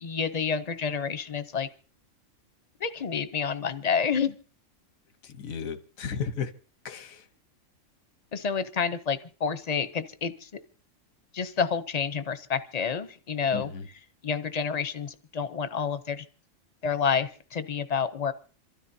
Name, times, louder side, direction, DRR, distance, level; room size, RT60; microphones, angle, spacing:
voice 1, 0.0-1.7 2.8-4.4 8.3-10.5 11.3-13.7 14.2-16.2 16.8-18.3, left 6 dB, 40° left, 12 dB, 0.6 m, -29 dB
voice 2, 5.2-6.5 6.8-7.3 13.5-13.9, left 6 dB, 90° left, 10 dB, 1.4 m, -34 dB
26.5 x 13.0 x 2.7 m, 0.39 s
omnidirectional pair, 1.4 m